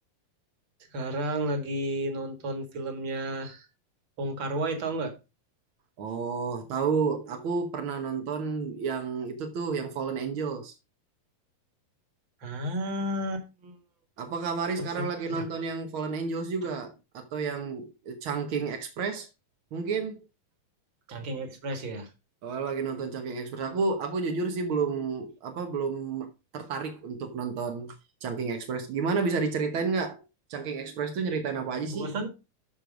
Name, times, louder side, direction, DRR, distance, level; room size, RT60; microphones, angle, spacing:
voice 1, 0.9-3.7 4.2-5.2 12.4-13.8 14.8-15.5 21.1-22.1 31.9-32.3, right 1 dB, 45° right, 2.0 m, -32 dB
voice 2, 6.0-10.7 14.2-19.3 19.7-20.2 22.4-28.0 28.2-30.2 30.5-32.1, right 5 dB, 70° right, 1.2 m, -31 dB
12.0 x 4.7 x 5.1 m
omnidirectional pair, 4.0 m